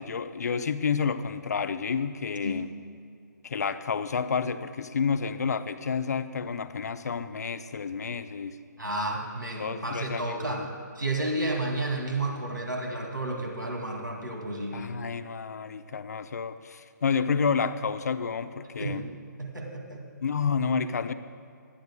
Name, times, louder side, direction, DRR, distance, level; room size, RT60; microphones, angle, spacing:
voice 1, 0.0-2.7 3.4-8.6 9.6-10.7 14.7-19.0 20.2-21.1, left 6 dB, 60° left, 11 dB, 0.6 m, -30 dB
voice 2, 8.8-10.7 11.0-14.9 18.8-19.0 19.4-20.1, right 2 dB, 90° right, 0 dB, 2.4 m, -31 dB
19.5 x 11.5 x 2.2 m, 2.4 s
figure-of-eight pair, 135°, 10 cm